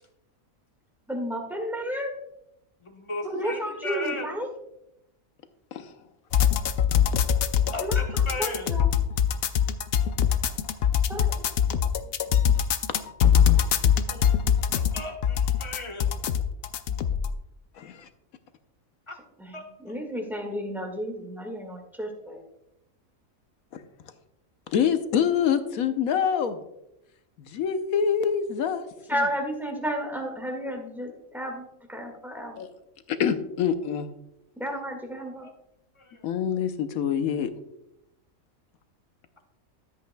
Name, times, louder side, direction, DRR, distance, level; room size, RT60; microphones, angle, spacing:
voice 1, 1.1-2.1 3.2-4.5 7.8-8.9 11.1-11.3 19.4-22.4 29.1-32.6 34.6-35.5, equal, ahead, 2 dB, 1.7 m, -32 dB
voice 2, 2.8-4.3 7.7-8.7 14.1-14.4 14.7-16.2 19.1-19.2 19.5-20.0 35.4-35.5 36.0-36.3, left 2 dB, 25° left, 2 dB, 1.1 m, -36 dB
sound 1, 6.3-17.3, left 8 dB, 60° left, 0.6 m, -23 dB
voice 3, 17.8-18.1 24.7-26.6 27.4-28.8 32.6-32.7 33.1-34.1 36.2-37.5, left 7 dB, 85° left, 9 dB, 1.2 m, -25 dB
13.0 x 8.2 x 2.2 m, 0.84 s
omnidirectional pair, 1.5 m